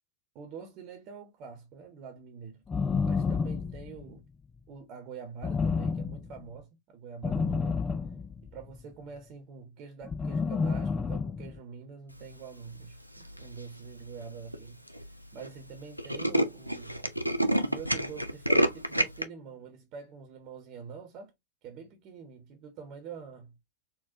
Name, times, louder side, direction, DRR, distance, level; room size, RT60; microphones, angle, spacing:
voice 1, 0.3-2.6 3.0-4.3 4.7-7.9 8.4-14.8 15.3-21.3 21.6-23.6, right 6 dB, 40° right, 0.9 m, -45 dB
sound 1, 2.7-4.2 5.4-6.4 7.2-8.8 10.0-11.6, left 5 dB, 15° left, 0.3 m, -30 dB
Tools, 13.2-13.6 14.2-14.3 14.5-14.6 14.9-15.1 15.4-15.5 15.8-19.2, equal, 90° left, 0.4 m, -27 dB
4.2 x 2.1 x 2.7 m
figure-of-eight pair, 90°, 0 cm